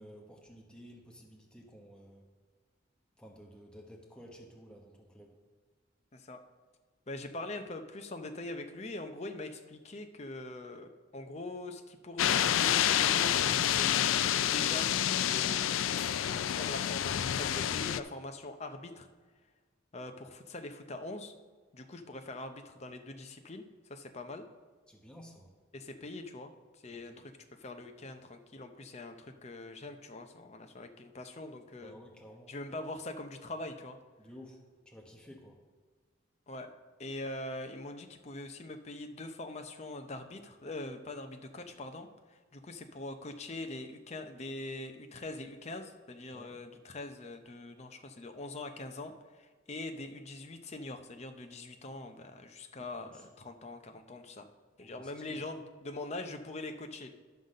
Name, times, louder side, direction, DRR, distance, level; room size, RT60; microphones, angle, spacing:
voice 1, 0.0-2.2 3.2-5.4 24.9-25.5 27.0-27.2 31.8-32.5 34.2-34.6 34.9-35.6 46.3-46.5 53.1-53.2 54.8-55.4, equal, 5° left, -1 dB, 1.0 m, -53 dB
voice 2, 6.1-6.4 7.1-13.9 14.2-19.1 19.9-21.3 21.7-23.6 23.9-24.4 25.7-26.5 26.8-27.3 27.6-31.9 32.5-34.0 36.5-36.7 37.0-54.5 54.8-57.1, left 2 dB, 35° left, 6 dB, 0.6 m, -43 dB
sound 1, 12.2-18.0, left 10 dB, 75° left, 0.3 m, -28 dB
11.5 x 4.0 x 6.4 m, 1.4 s
head